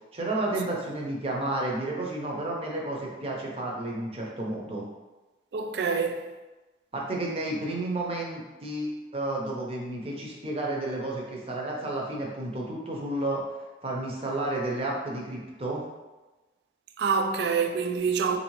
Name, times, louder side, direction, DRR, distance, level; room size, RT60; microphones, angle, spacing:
voice 1, 0.1-4.9 6.9-13.4 13.8-15.8, right 2 dB, 30° right, 0.7 m, -31 dB
voice 2, 5.5-6.2 17.0-18.4, right 5 dB, 65° right, 0.3 m, -26 dB
4.0 x 2.7 x 3.0 m
head